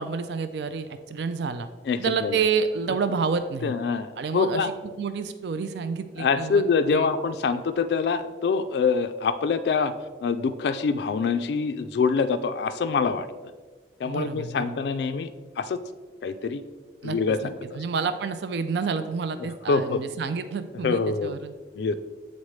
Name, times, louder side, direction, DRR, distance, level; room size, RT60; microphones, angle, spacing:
voice 1, 0.0-1.7 2.0-3.7 4.2-6.6 6.9-7.1 14.0-14.8 17.0-17.2 17.4-21.5, right 5 dB, 70° right, 10 dB, 0.4 m, -29 dB
voice 2, 1.9-2.4 3.6-4.7 6.2-9.9 10.2-13.3 14.0-15.3 15.6-15.8 16.2-16.6 17.0-17.8 19.7-20.0 20.8-21.3 21.8-21.9, left 5 dB, 70° left, 10 dB, 0.3 m, -25 dB
8.6 x 4.1 x 3.1 m, 1.4 s
head